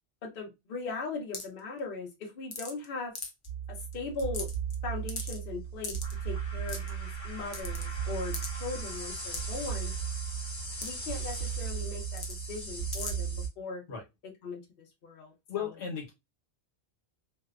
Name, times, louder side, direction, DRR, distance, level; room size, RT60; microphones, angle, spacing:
voice 1, 0.2-3.1 3.7-4.5 4.8-6.0 6.2-9.9 10.8-13.8 14.4-15.7, left 4 dB, 60° left, 0 dB, 0.8 m, -39 dB
sound 1, 1.3-1.6 2.5-2.8 3.2-3.5 3.9-4.0 4.2-4.7 5.1-5.4 5.8-6.1 6.7-6.9 7.5-7.9 8.3-8.5 9.3-9.4 10.8-10.9 11.2-11.3 12.1-12.4 12.9-13.1, left 3 dB, 45° left, 0.4 m, -38 dB
sound 2, 3.4-13.5, right 6 dB, 25° left, 1.2 m, -36 dB
voice 2, 15.5-16.1, left 7 dB, 80° left, 1 dB, 1.2 m, -35 dB
2.6 x 2.1 x 2.3 m, 0.22 s
omnidirectional pair, 1.1 m